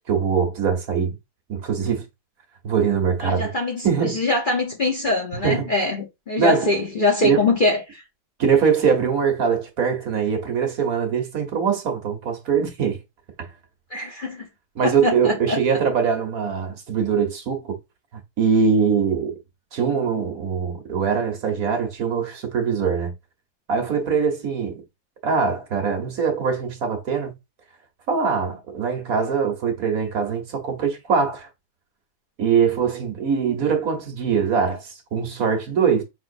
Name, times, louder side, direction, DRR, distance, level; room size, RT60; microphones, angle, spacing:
voice 1, 0.1-1.1 1.5-2.0 2.6-3.5 3.8-4.2 5.4-5.7 6.4-6.7 7.2-7.4 8.4-13.0 13.4-13.5 14.7-17.8 18.4-19.4 19.7-23.1 23.7-24.8 25.2-27.3 28.1-31.5 32.4-36.0, right 6 dB, 60° right, 1.5 m, -22 dB
voice 2, 3.2-8.0 13.9-14.5 14.8-15.6, left 2 dB, 35° left, 0.9 m, -23 dB
5.2 x 3.7 x 2.6 m
omnidirectional pair, 1.7 m